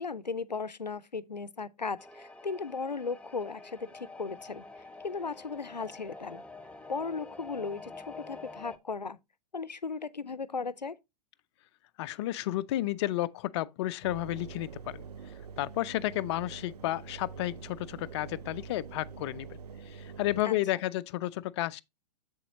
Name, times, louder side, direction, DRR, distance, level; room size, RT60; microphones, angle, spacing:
voice 1, 0.0-4.6 5.0-6.4 6.9-9.2 9.5-11.0 20.4-20.5, left 4 dB, 90° left, 0.6 m, -36 dB
sound 1, 2.0-8.8, left 3 dB, 5° left, 0.8 m, -47 dB
voice 2, 12.0-15.0 15.6-19.6 19.9-21.8, left 15 dB, 40° left, 0.5 m, -32 dB
Engine, 14.0-20.4, right 6 dB, 70° right, 0.6 m, -45 dB
7.9 x 6.8 x 2.9 m
figure-of-eight pair, 105°, 21 cm